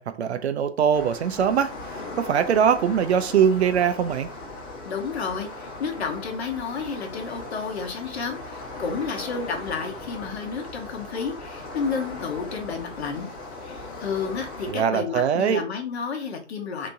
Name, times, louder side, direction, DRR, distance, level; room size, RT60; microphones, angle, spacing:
voice 1, 0.0-4.3 14.7-15.6, right 8 dB, 60° right, 0.5 m, -22 dB
sound 1, 0.9-14.7, left 2 dB, 30° left, 1.1 m, -38 dB
voice 2, 4.8-13.3 13.6-16.9, left 5 dB, 60° left, 1.0 m, -31 dB
3.4 x 2.9 x 2.6 m
figure-of-eight pair, 110°, 37 cm